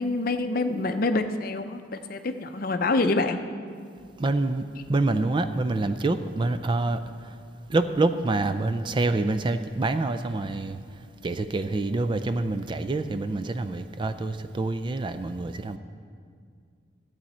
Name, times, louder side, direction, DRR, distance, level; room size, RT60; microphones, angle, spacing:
voice 1, 0.0-3.4, left 2 dB, 50° left, 8 dB, 0.6 m, -26 dB
voice 2, 4.2-7.3 7.7-10.8 11.2-15.8, right 2 dB, 25° right, 10 dB, 0.3 m, -26 dB
14.5 x 8.4 x 4.3 m, 2.2 s
head